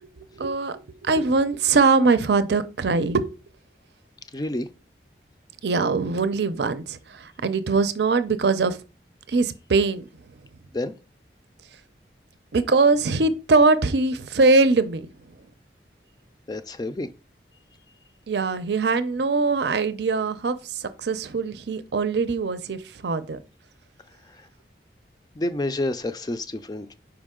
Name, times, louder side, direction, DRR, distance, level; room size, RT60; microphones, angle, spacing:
voice 1, 0.0-3.3 5.6-8.8 9.3-10.0 12.5-15.1 18.3-23.4, right 3 dB, 75° right, 0.5 m, -22 dB
voice 2, 4.3-4.7 10.7-10.9 16.5-17.1 24.3-24.5 25.4-27.0, left 1 dB, 20° left, 0.4 m, -29 dB
5.3 x 4.8 x 3.6 m
head